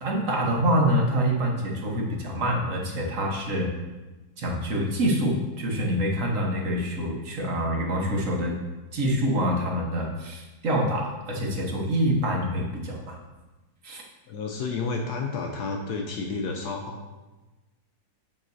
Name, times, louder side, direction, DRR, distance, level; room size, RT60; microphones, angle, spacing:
voice 1, 0.0-3.7 4.4-8.5 8.9-13.1 13.8-14.0, equal, 50° right, -1 dB, 1.3 m, -26 dB
voice 2, 14.3-17.1, left 4 dB, 75° left, 2 dB, 1.1 m, -31 dB
7.1 x 6.5 x 2.7 m, 1.1 s
omnidirectional pair, 1.9 m